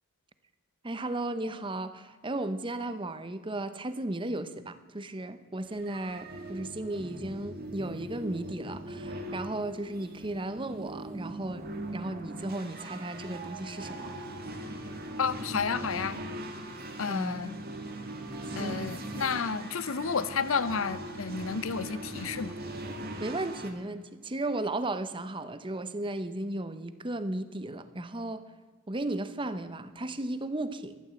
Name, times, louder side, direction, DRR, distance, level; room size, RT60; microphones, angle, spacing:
voice 1, 0.8-11.7 11.9-14.2 17.1-17.4 18.6-18.8 23.2-28.4 28.9-30.9, right 2 dB, 25° right, 12 dB, 0.7 m, -35 dB
sound 1, 5.7-23.7, right 1 dB, 45° right, 1.8 m, -40 dB
voice 2, 15.2-16.2 17.0-17.5 18.6-22.5, left 5 dB, 65° left, 15 dB, 0.7 m, -31 dB
13.5 x 12.0 x 7.6 m, 1.4 s
head